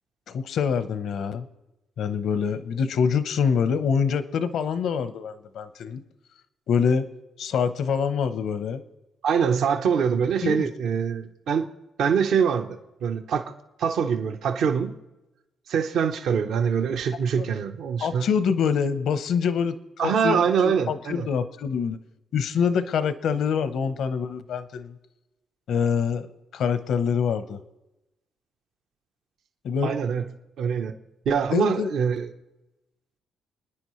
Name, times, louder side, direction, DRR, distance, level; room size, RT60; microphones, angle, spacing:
voice 1, 0.3-1.5 2.0-6.0 6.7-7.1 7.4-8.8 10.4-10.7 17.4-17.5 18.0-19.8 20.0-22.0 22.3-25.0 25.7-26.3 26.5-27.6 29.6-30.0 31.5-31.9, left 6 dB, 70° left, 12 dB, 0.8 m, -25 dB
voice 2, 9.2-11.6 12.0-13.5 13.8-14.9 15.7-18.3 20.0-21.2 29.8-30.3 30.6-30.9 31.3-32.3, right 7 dB, 70° right, 6 dB, 0.9 m, -24 dB
28.5 x 9.9 x 3.2 m, 0.99 s
cardioid pair, 90°, 0 cm